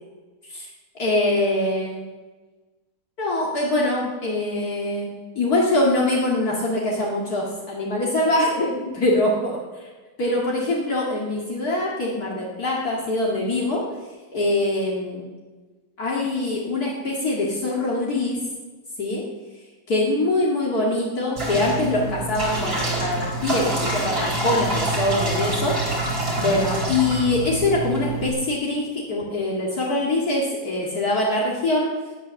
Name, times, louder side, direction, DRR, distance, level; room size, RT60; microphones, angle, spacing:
voice 1, 0.9-2.0 3.2-5.1 5.3-9.8 10.2-13.9 14.3-15.3 16.0-18.4 19.0-19.2 19.9-26.0 26.4-31.9, left 2 dB, 65° left, -4 dB, 2.7 m, -23 dB
sound 1, 21.4-28.3, right 2 dB, 75° right, 4.4 m, -26 dB
18.0 x 9.1 x 6.5 m, 1.3 s
omnidirectional pair, 1.7 m